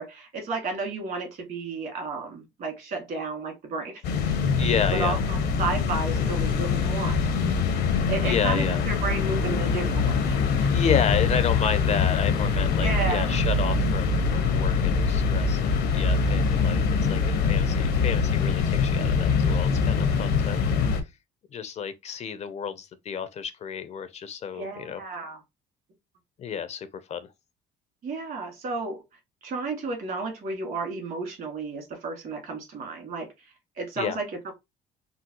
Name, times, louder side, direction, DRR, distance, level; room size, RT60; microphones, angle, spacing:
voice 1, 0.0-4.0 4.9-7.5 8.1-10.4 12.8-13.4 18.2-18.5 24.5-25.4 28.0-29.0 29.4-34.5, right 3 dB, 60° right, 1.7 m, -32 dB
sound 1, 4.0-21.0, left 5 dB, 80° left, 0.7 m, -24 dB
voice 2, 4.6-5.1 8.2-8.8 10.7-16.8 17.1-20.6 21.5-25.0 26.4-27.3 34.0-34.2, left 7 dB, 40° left, 0.4 m, -31 dB
3.8 x 2.0 x 2.8 m
cardioid pair, 110°, 17 cm